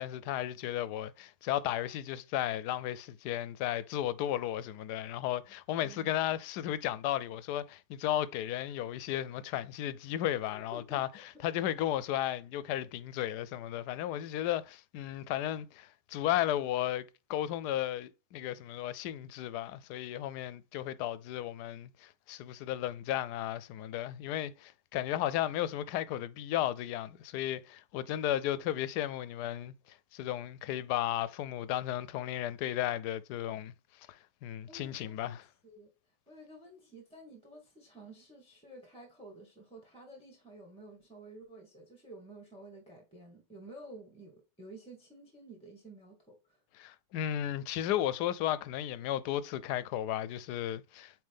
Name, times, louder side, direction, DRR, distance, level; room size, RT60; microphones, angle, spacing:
voice 1, 0.0-11.1 11.4-29.7 30.1-33.7 34.4-35.4 46.8-51.1, left 12 dB, 80° left, 1.1 m, -34 dB
voice 2, 5.8-6.3 10.4-11.2 34.7-35.4 35.6-35.9 36.3-46.6, right 2 dB, 5° left, 1.4 m, -52 dB
8.7 x 3.2 x 3.5 m
omnidirectional pair, 1.7 m